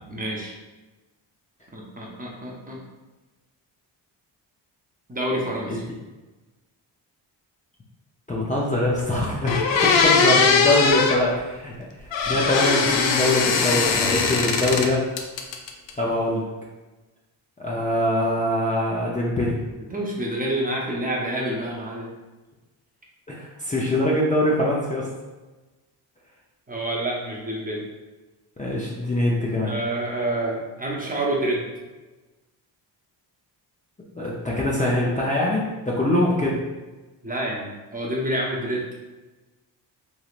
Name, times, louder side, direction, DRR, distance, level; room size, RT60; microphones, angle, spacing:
voice 1, 0.1-0.5 1.7-2.8 5.1-5.8 19.9-22.1 26.7-27.9 29.6-31.7 37.2-38.9, right 1 dB, 20° right, -3 dB, 0.7 m, -28 dB
voice 2, 8.3-11.7 12.0-15.0 16.0-16.4 17.6-19.6 23.3-25.1 28.6-29.7 34.2-36.6, left 1 dB, 15° left, -5 dB, 0.6 m, -23 dB
sound 1, 9.0-9.1 9.5-11.2 12.1-14.9 15.2-15.9, left 5 dB, 75° left, 0.6 m, -20 dB
3.2 x 2.7 x 2.4 m, 1.2 s
cardioid pair, 70°, 45 cm